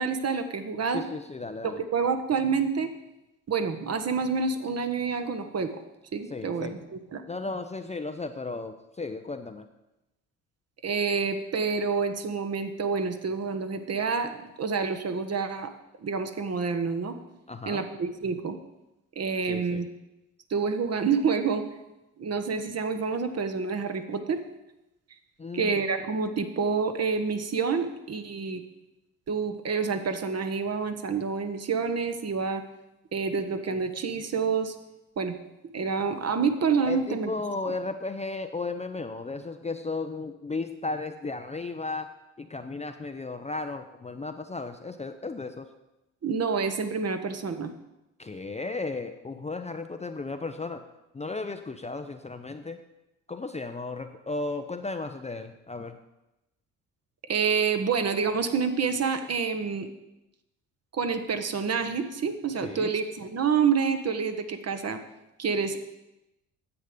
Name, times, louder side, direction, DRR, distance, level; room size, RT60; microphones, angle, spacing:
voice 1, 0.0-1.0 1.6-2.9 3.5-5.8 6.1-7.2 10.8-15.7 16.0-17.2 17.6-18.5 19.2-19.9 20.5-21.6 22.2-24.4 25.5-28.6 29.3-32.6 33.1-34.7 35.2-35.4 35.7-37.3 37.6-37.7 46.2-47.7 57.3-59.9 60.9-65.0 65.4-65.8, right 5 dB, 35° right, 8 dB, 1.1 m, -28 dB
voice 2, 0.9-1.8 6.3-6.7 7.3-9.7 17.5-17.8 19.5-19.9 25.4-25.8 36.9-45.7 48.2-50.8 51.1-52.8 53.3-56.0 62.6-62.9, left 3 dB, 15° left, 7 dB, 0.7 m, -35 dB
9.6 x 7.8 x 5.1 m, 0.94 s
hypercardioid pair, 50°, 42 cm